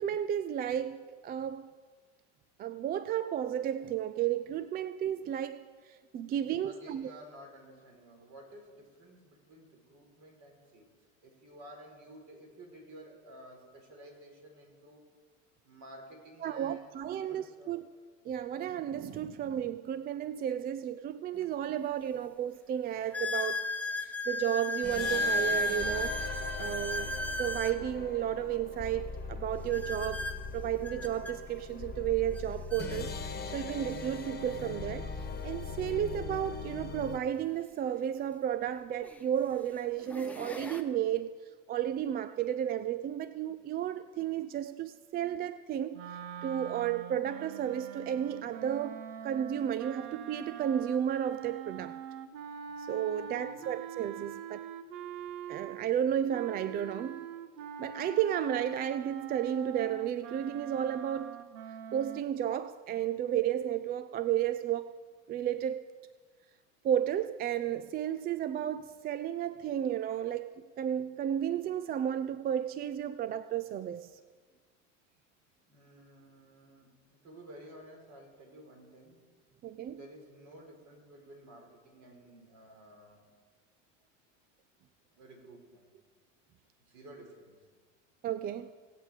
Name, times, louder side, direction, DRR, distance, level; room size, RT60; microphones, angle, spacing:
voice 1, 0.0-1.7 2.6-7.1 16.4-17.9 18.3-23.6 24.0-26.2 26.6-27.1 27.4-30.2 30.5-35.1 35.4-41.3 41.7-46.0 46.4-52.0 52.8-54.6 55.5-57.2 57.8-61.4 61.9-64.9 65.3-65.8 66.8-70.5 70.8-74.1 79.6-80.0 88.2-88.7, right 10 dB, 25° right, 14 dB, 0.3 m, -33 dB
voice 2, 6.3-10.9 11.2-15.0 15.6-17.8 53.2-53.8 75.7-79.2 79.9-83.3 85.1-85.9 86.9-87.6, right 1 dB, 45° right, 1 dB, 4.4 m, -53 dB
sound 1, 21.4-21.5 22.2-22.3 23.1-27.8 29.7-31.3 32.3-32.4 32.7-32.9 33.7-33.8 36.0-36.1 38.2-38.3 39.0-39.3 39.9-40.8, left 2 dB, 5° left, 1.0 m, -34 dB
sound 2, 24.8-37.2, left 4 dB, 25° left, 1.5 m, -40 dB
sound 3, 45.9-56.0 56.3-62.2, right 8 dB, 65° right, 1.0 m, -44 dB
18.0 x 8.3 x 4.8 m, 1.5 s
hypercardioid pair, 85°, 39 cm